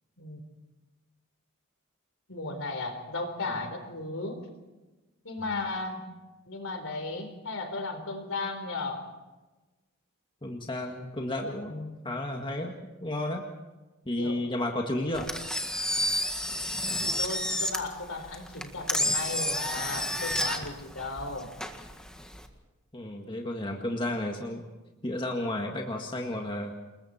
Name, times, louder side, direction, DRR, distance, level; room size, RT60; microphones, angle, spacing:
voice 1, 2.3-4.4 5.2-6.0 6.5-9.0 14.2-14.5 14.9-15.1 16.8-21.5, left 3 dB, 65° left, 6 dB, 4.1 m, -35 dB
voice 2, 10.4-13.4 14.1-15.3 22.9-24.6 25.0-26.7, left 1 dB, 25° left, 1 dB, 1.9 m, -32 dB
Engine, 15.1-22.5, left 1 dB, 5° left, 1.8 m, -31 dB
28.5 x 21.0 x 4.4 m, 1.2 s
head